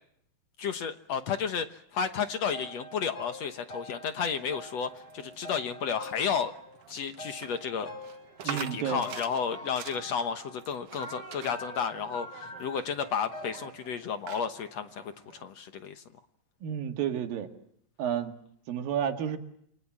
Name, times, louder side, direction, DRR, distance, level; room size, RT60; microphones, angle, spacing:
voice 1, 0.6-6.5 6.9-7.9 8.4-16.0, left 6 dB, 60° left, 9 dB, 2.0 m, -32 dB
sound 1, 2.1-6.8 7.2-13.7, left 1 dB, 35° left, 5.8 m, -46 dB
sound 2, 4.5-15.5, right 9 dB, 55° right, 1.8 m, -46 dB
voice 2, 8.4-9.0 16.6-17.5 18.0-18.3 18.7-19.4, right 9 dB, 85° right, 7 dB, 3.6 m, -31 dB
29.0 x 24.5 x 7.4 m, 0.70 s
omnidirectional pair, 4.0 m